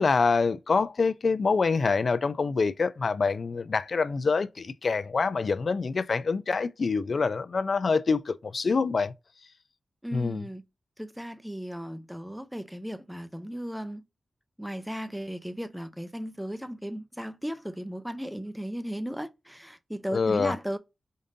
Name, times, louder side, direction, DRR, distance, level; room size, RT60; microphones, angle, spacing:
voice 1, 0.0-9.1 10.1-10.4 20.1-20.6, left 4 dB, 60° left, 0.3 m, -26 dB
voice 2, 10.0-10.6 11.0-14.0 14.6-20.8, equal, 5° right, 0.5 m, -36 dB
5.2 x 2.6 x 2.6 m
wide cardioid pair, 95°, 0 cm